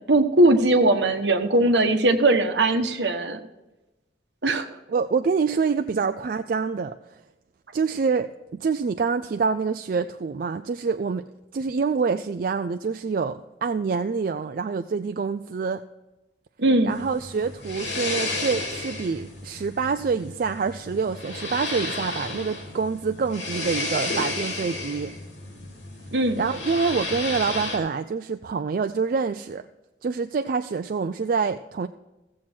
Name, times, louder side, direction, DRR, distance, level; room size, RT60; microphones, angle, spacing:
voice 1, 0.1-3.4 4.4-4.7 16.6-16.9 26.1-26.4, right 2 dB, 70° right, 6 dB, 1.1 m, -20 dB
voice 2, 4.9-6.9 7.7-11.2 11.5-15.8 16.8-25.1 26.4-29.6 30.0-31.9, right 5 dB, 50° right, 8 dB, 0.3 m, -26 dB
sound 1, 16.9-27.8, left 2 dB, 85° left, 2.9 m, -32 dB
15.5 x 7.5 x 4.4 m, 1.0 s
head